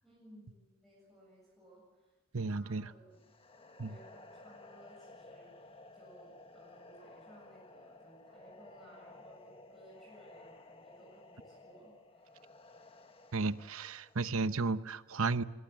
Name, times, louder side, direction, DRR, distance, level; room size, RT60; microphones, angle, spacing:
voice 1, 0.0-12.5, right 1 dB, ahead, 7.7 m, -60 dB
voice 2, 2.3-2.9 3.8-3.9 13.3-15.4, right 3 dB, 70° right, 0.9 m, -33 dB
sound 1, 3.2-14.3, left 2 dB, 25° left, 1.5 m, -56 dB
24.0 x 22.5 x 7.6 m
head